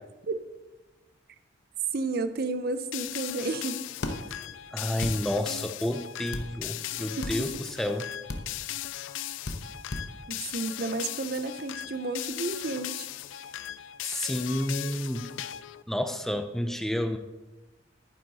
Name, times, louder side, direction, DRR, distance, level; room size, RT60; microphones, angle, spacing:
voice 1, 1.9-3.8 7.2-7.5 10.3-13.1, right 3 dB, 50° right, 11 dB, 0.6 m, -32 dB
sound 1, 2.9-15.8, left 13 dB, 80° left, 0.3 m, -38 dB
sound 2, 4.0-4.2 5.0-5.2 6.3-6.5 7.2-7.4 8.3-8.4 9.5-9.6 9.9-10.1, left 2 dB, 60° left, 1.0 m, -33 dB
voice 2, 4.7-8.1 14.0-15.3 15.9-17.2, left 1 dB, ahead, 7 dB, 0.5 m, -30 dB
11.0 x 9.5 x 4.1 m, 1.1 s
head